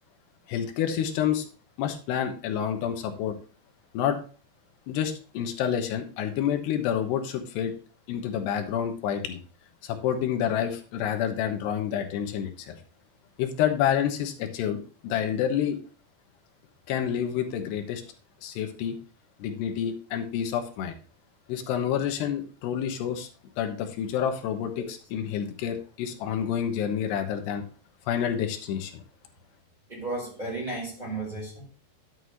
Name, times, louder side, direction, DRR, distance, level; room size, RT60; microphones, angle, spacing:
voice 1, 0.5-1.4 1.8-3.4 3.9-4.2 4.9-7.7 8.1-9.4 9.8-12.8 13.4-15.8 16.9-18.0 18.4-19.0 19.4-20.9 21.5-23.3 23.6-27.6 28.1-29.0, left 9 dB, 85° left, 3.3 m, -28 dB
voice 2, 29.9-31.6, right 2 dB, 10° right, 4.1 m, -34 dB
11.0 x 8.0 x 3.0 m
omnidirectional pair, 4.8 m